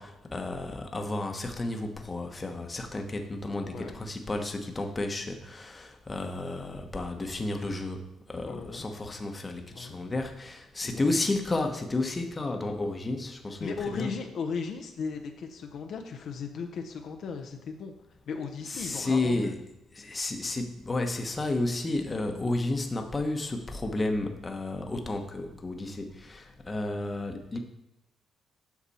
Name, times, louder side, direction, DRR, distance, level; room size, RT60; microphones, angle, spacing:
voice 1, 0.0-8.0 8.3-14.1 18.7-19.5 20.0-27.6, left 2 dB, 25° left, 4 dB, 1.0 m, -32 dB
voice 2, 3.7-4.0 8.4-8.9 9.7-10.0 10.8-11.1 13.6-17.9 18.3-19.6, left 5 dB, 65° left, 4 dB, 0.8 m, -36 dB
8.3 x 6.0 x 4.2 m, 0.88 s
cardioid pair, 90°, 0 cm